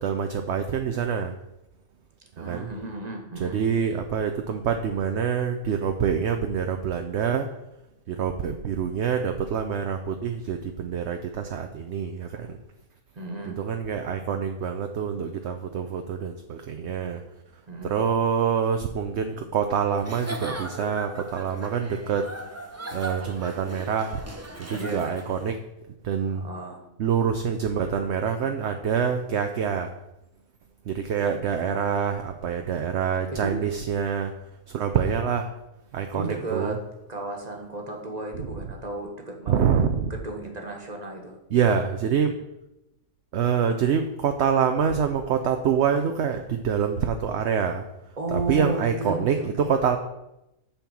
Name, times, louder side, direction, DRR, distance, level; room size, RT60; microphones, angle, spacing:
voice 1, 0.0-1.4 2.4-2.7 3.4-7.5 8.1-12.6 13.5-17.2 17.8-22.3 22.9-24.2 24.6-25.6 26.0-26.4 27.0-29.9 30.9-34.3 34.7-35.5 35.9-36.8 38.4-38.5 39.5-40.1 41.5-42.4 43.3-47.8 48.3-50.0, right 7 dB, 60° right, 6 dB, 0.9 m, -26 dB
voice 2, 2.4-3.6 13.1-13.6 17.7-18.0 24.7-25.1 26.3-26.9 31.2-31.8 33.3-33.6 36.1-36.8 37.1-39.6 40.1-41.4 48.2-49.7, right 2 dB, 30° right, 2 dB, 1.6 m, -34 dB
Giggle / Chuckle chortle, 20.0-25.5, right 2 dB, 15° right, 0.7 m, -38 dB
8.8 x 4.4 x 7.3 m, 0.90 s
omnidirectional pair, 1.4 m